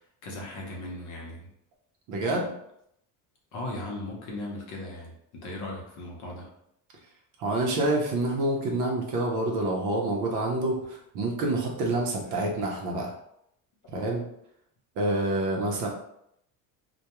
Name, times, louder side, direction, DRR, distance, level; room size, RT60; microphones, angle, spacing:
voice 1, 0.2-1.4 3.5-6.5 12.2-12.4, left 1 dB, 50° left, -2 dB, 0.8 m, -37 dB
voice 2, 2.1-2.5 7.4-13.1 13.9-14.2 15.0-15.9, right 2 dB, 50° right, 0 dB, 0.6 m, -27 dB
2.2 x 2.2 x 2.9 m, 0.76 s
cardioid pair, 155°, 38 cm